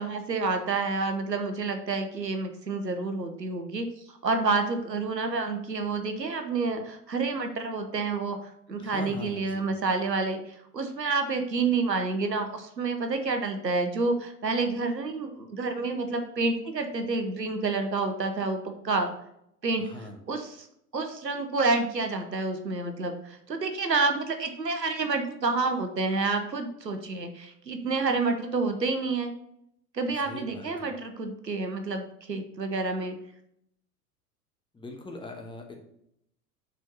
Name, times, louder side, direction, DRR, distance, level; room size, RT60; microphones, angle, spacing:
voice 1, 0.0-3.9 4.2-19.1 19.6-19.9 20.3-20.7 20.9-29.3 29.9-33.1, right 3 dB, 90° right, 6 dB, 0.9 m, -29 dB
voice 2, 8.8-9.7 19.8-20.2 30.2-30.9 34.7-35.8, left 2 dB, 10° left, 2 dB, 1.2 m, -41 dB
6.3 x 4.5 x 5.4 m, 0.75 s
figure-of-eight pair, 90°, 48 cm